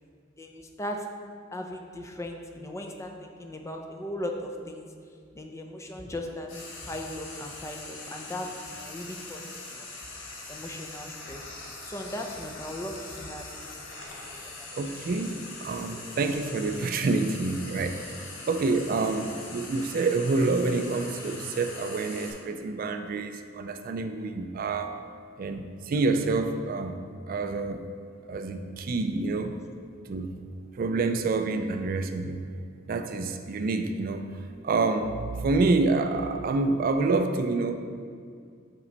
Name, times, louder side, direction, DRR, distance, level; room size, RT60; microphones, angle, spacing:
voice 1, 0.4-1.1 1.5-4.9 5.3-6.5 6.8-9.9 10.5-11.5 11.8-13.8 14.3-14.7 15.6-16.1 17.0-17.2 37.7-37.8, left 1 dB, 15° left, 3 dB, 0.5 m, -38 dB
Frying (food), 6.5-22.3, left 3 dB, 85° left, 1.2 m, -42 dB
voice 2, 14.8-25.0 25.4-27.0 27.3-27.8 28.3-29.5 30.1-30.3 30.8-32.4 32.9-34.2 34.6-37.7, right 3 dB, 45° right, 7 dB, 0.3 m, -27 dB
5.8 x 5.4 x 4.0 m, 2.2 s
head